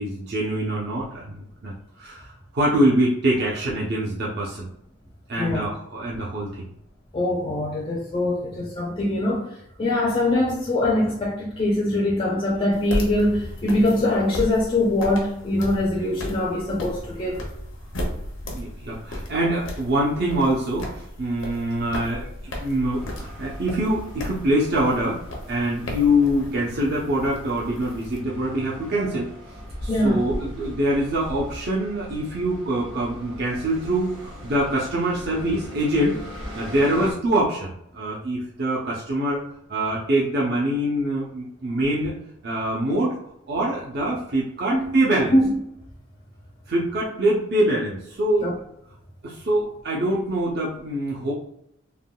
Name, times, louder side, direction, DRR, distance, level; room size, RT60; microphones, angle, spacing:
voice 1, 0.0-4.7 5.3-6.6 8.5-8.6 18.4-25.2 25.5-29.3 29.8-36.2 36.5-39.4 39.7-42.1 42.4-43.2 43.5-45.4 46.7-48.5 49.2-51.3, right 1 dB, 55° right, -5 dB, 0.6 m, -24 dB
voice 2, 5.4-5.7 7.1-17.4 29.9-30.2 44.7-45.0 45.3-45.6 48.4-48.5, left 1 dB, 30° left, -3 dB, 0.4 m, -23 dB
sound 1, 12.7-28.2, left 1 dB, 75° left, 0.7 m, -35 dB
sound 2, 22.9-37.1, equal, 90° right, 1.1 m, -39 dB
3.5 x 2.1 x 2.2 m, 0.75 s
head